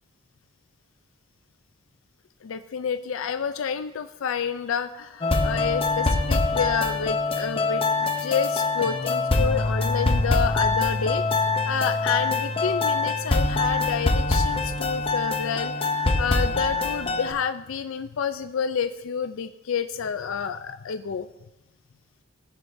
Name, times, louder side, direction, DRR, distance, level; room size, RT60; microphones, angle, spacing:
voice 1, 2.4-7.9 8.2-21.3, left 7 dB, 65° left, 10 dB, 0.4 m, -29 dB
sound 1, 5.2-17.3, left 3 dB, 25° left, 0.7 m, -24 dB
20.0 x 7.3 x 2.6 m, 1.0 s
head